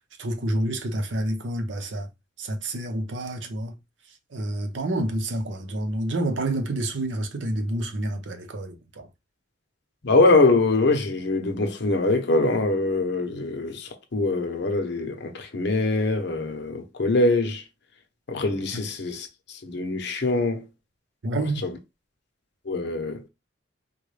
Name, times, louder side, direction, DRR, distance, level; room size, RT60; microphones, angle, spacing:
voice 1, 0.2-2.1 2.4-3.8 4.3-9.1 18.7-18.8 21.2-21.6, right 1 dB, 75° right, 0.8 m, -28 dB
voice 2, 10.0-17.6 18.3-20.7 21.6-21.8 22.6-23.2, left 2 dB, 65° left, 0.7 m, -23 dB
3.6 x 2.3 x 3.2 m
head